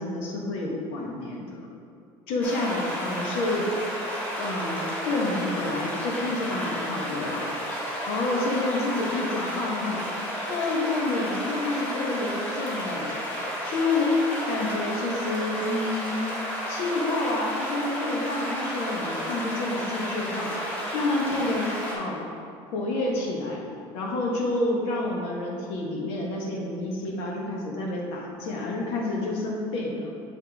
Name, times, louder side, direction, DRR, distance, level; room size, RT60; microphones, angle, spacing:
voice 1, 0.0-1.6 2.3-3.7 4.4-7.4 8.1-10.0 10.5-13.2 13.6-14.1 14.5-16.3 16.7-20.5 20.9-22.3 22.7-23.6 23.9-30.1, left 2 dB, 70° left, -2 dB, 1.4 m, -29 dB
sound 1, 2.4-21.9, equal, 15° left, 1.7 m, -32 dB
9.2 x 4.4 x 3.6 m, 2.5 s
cardioid pair, 170°, 10 cm